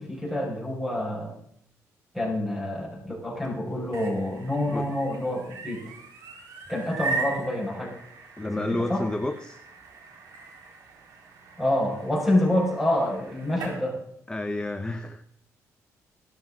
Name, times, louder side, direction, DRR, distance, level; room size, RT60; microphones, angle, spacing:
voice 1, 0.0-1.3 2.1-5.8 6.7-7.9 8.6-9.0 11.6-14.0, left 1 dB, 5° right, -1 dB, 5.6 m, -27 dB
sound 1, 3.7-13.8, right 4 dB, 85° right, 3.8 m, -39 dB
voice 2, 8.4-9.6 14.3-15.2, left 2 dB, 15° left, 7 dB, 0.9 m, -30 dB
16.5 x 13.5 x 3.8 m, 0.70 s
cardioid pair, 105°, 6 cm